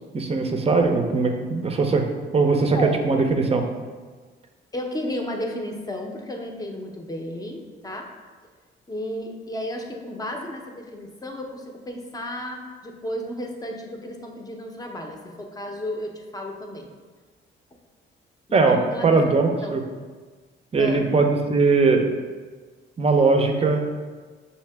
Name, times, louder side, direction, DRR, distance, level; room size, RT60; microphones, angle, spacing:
voice 1, 0.1-2.1 2.3-3.7 18.5-19.8 20.7-22.1 23.0-23.8, right 4 dB, 30° right, 4 dB, 0.5 m, -20 dB
voice 2, 4.7-8.1 8.9-16.9 18.5-19.8 20.8-21.1, left 1 dB, 20° left, 2 dB, 0.6 m, -33 dB
5.5 x 2.8 x 3.4 m, 1.4 s
cardioid pair, 90°, 20 cm